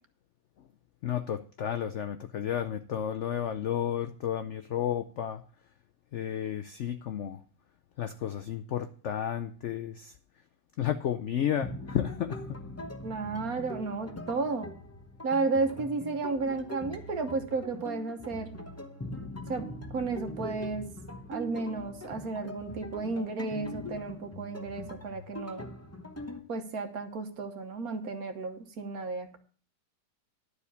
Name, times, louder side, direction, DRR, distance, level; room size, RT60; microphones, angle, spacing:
voice 1, 1.0-5.4 6.1-7.4 8.0-10.1 10.8-12.6, left 10 dB, 70° left, 10 dB, 0.7 m, -32 dB
sound 1, 11.6-26.4, left 1 dB, 15° left, 0.6 m, -42 dB
voice 2, 13.0-14.7 15.2-18.6 19.5-20.9 21.3-25.7 26.5-29.4, right 3 dB, 60° right, 7 dB, 1.6 m, -33 dB
11.0 x 5.0 x 8.2 m, 0.43 s
omnidirectional pair, 1.8 m